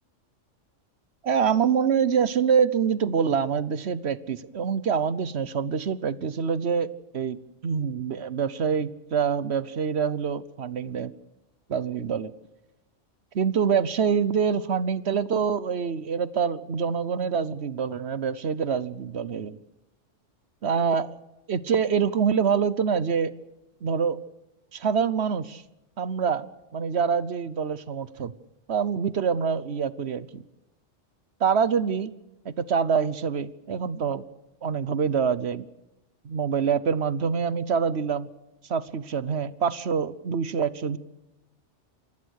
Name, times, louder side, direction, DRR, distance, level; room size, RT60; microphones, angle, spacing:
voice 1, 1.2-11.1 11.7-12.3 13.3-19.6 20.6-21.2 21.5-23.3 23.8-24.2 24.7-25.6 26.0-26.5 26.7-28.3 28.7-30.4 31.4-32.1 32.4-34.2 34.6-35.7 36.2-38.3 38.7-41.0, right 6 dB, 65° right, 16 dB, 1.2 m, -25 dB
27.0 x 20.0 x 6.5 m, 0.96 s
omnidirectional pair, 1.2 m